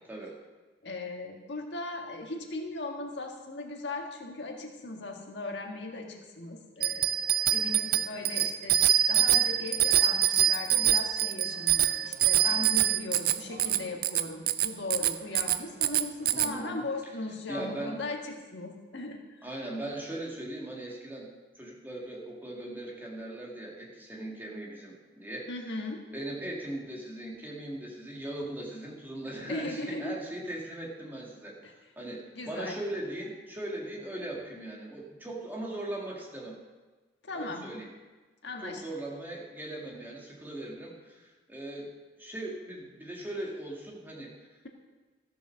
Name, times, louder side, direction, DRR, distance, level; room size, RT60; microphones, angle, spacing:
voice 1, 0.8-7.1 7.5-8.8 9.1-19.4 25.5-26.0 29.5-30.2 31.6-31.7 32.3-32.8 37.2-37.7 38.4-38.8, left 2 dB, 70° left, 1 dB, 1.7 m, -38 dB
Bicycle bell, 6.8-16.5, right 11 dB, 55° right, 0.5 m, -25 dB
voice 2, 16.3-16.9 17.5-18.0 19.4-21.3 21.6-25.5 26.1-31.6 32.0-36.6 37.3-37.9 38.6-41.9 42.2-44.5, right 1 dB, 10° right, -3 dB, 2.0 m, -39 dB
14.0 x 6.7 x 6.4 m, 1.3 s
head